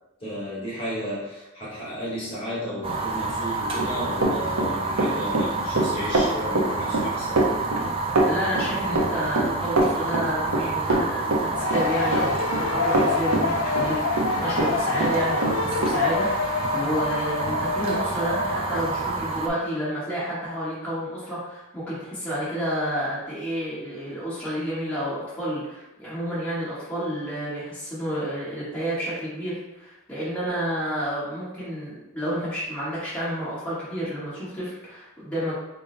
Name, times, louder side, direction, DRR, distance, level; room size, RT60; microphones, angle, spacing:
voice 1, 0.2-7.4, equal, 25° left, -8 dB, 1.2 m, -33 dB
Fire, 2.8-19.5, right 3 dB, 25° right, 0.3 m, -29 dB
Run, 3.6-14.7 15.0-16.0, right 2 dB, 70° right, 0.6 m, -24 dB
voice 2, 8.2-35.6, equal, 5° left, -11 dB, 1.2 m, -30 dB
sound 1, 11.5-19.2, left 5 dB, 70° left, 0.3 m, -28 dB
3.7 x 2.0 x 3.8 m, 0.98 s
head